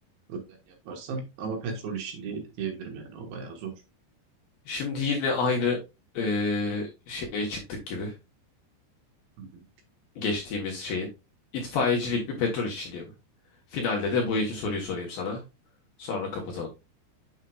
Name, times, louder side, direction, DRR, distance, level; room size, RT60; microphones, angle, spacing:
voice 1, 0.7-3.7 9.4-9.6, right 5 dB, 70° right, 3 dB, 3.3 m, -35 dB
voice 2, 4.7-5.8 6.1-8.1 10.2-11.1 11.5-13.0 13.7-15.4 16.0-16.7, left 4 dB, 70° left, 1 dB, 2.3 m, -28 dB
7.3 x 6.4 x 2.3 m, 0.26 s
omnidirectional pair, 5.3 m